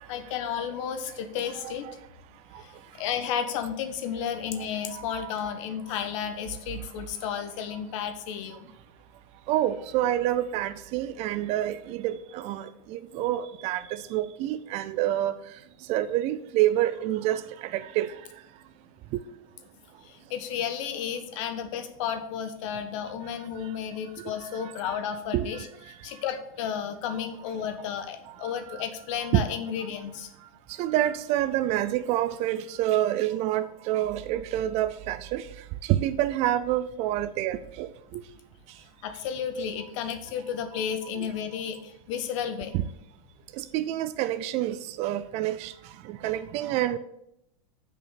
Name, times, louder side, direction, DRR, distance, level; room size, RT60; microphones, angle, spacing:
voice 1, 0.1-1.9 2.6-8.7 20.0-30.3 39.0-42.7, left 8 dB, 60° left, 1.2 m, -33 dB
voice 2, 4.9-5.3 9.5-15.3 15.9-18.2 19.1-19.2 24.2-24.7 25.3-25.5 28.4-28.8 29.3-29.4 30.8-35.5 35.8-38.2 41.2-41.3 42.7-42.8 43.5-45.7 46.0-47.0, right 13 dB, 40° right, 0.4 m, -28 dB
6.7 x 5.2 x 6.9 m
supercardioid pair, 145°, 18 cm